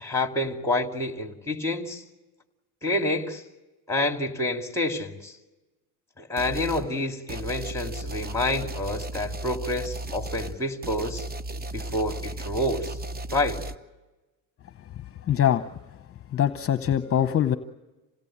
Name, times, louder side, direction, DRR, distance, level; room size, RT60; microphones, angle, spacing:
voice 1, 0.0-2.0 2.8-3.4 3.9-5.3 6.2-11.3 11.7-12.9 13.3-13.6, left 2 dB, 10° left, 5 dB, 2.6 m, -28 dB
sound 1, 6.4-6.9 7.3-13.8, right 2 dB, 25° right, 1.0 m, -35 dB
voice 2, 15.3-15.6 16.3-17.6, left 10 dB, 40° left, 11 dB, 1.0 m, -22 dB
27.5 x 17.5 x 8.7 m, 1.1 s
supercardioid pair, 95°, 36 cm